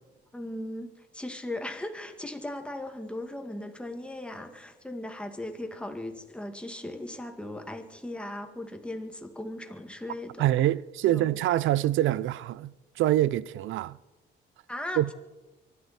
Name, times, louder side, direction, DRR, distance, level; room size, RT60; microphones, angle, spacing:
voice 1, 0.3-10.4 11.1-11.3 14.7-15.1, left 1 dB, 5° left, 2.0 m, -38 dB
voice 2, 10.4-14.0 15.0-15.1, right 14 dB, 80° right, 0.5 m, -25 dB
24.0 x 12.0 x 4.3 m
cardioid pair, 90°, 20 cm